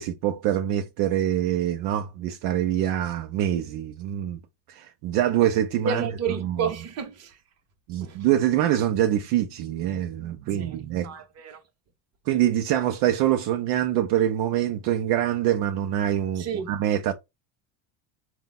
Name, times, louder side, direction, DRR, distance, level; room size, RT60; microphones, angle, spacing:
voice 1, 0.0-4.4 4.7-6.0 6.4-6.7 7.9-11.1 12.3-17.1, right 11 dB, 65° right, 0.6 m, -25 dB
voice 2, 5.8-7.4 8.0-8.2 10.6-10.8 11.0-11.6 16.4-16.8, right 6 dB, 35° right, 0.9 m, -30 dB
4.2 x 2.3 x 3.9 m
cardioid pair, 160°, 43 cm